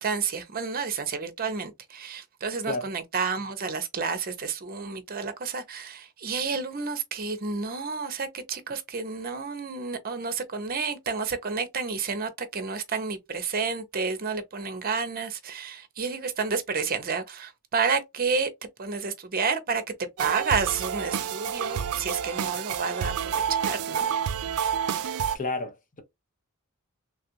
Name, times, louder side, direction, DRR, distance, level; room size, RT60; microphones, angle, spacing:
voice 1, 0.0-18.5 18.8-24.1, right 5 dB, 45° right, 0.7 m, -30 dB
sound 1, 20.2-25.4, right 8 dB, 90° right, 0.4 m, -29 dB
voice 2, 25.3-26.0, left 3 dB, 40° left, 0.9 m, -31 dB
3.3 x 2.4 x 2.8 m
head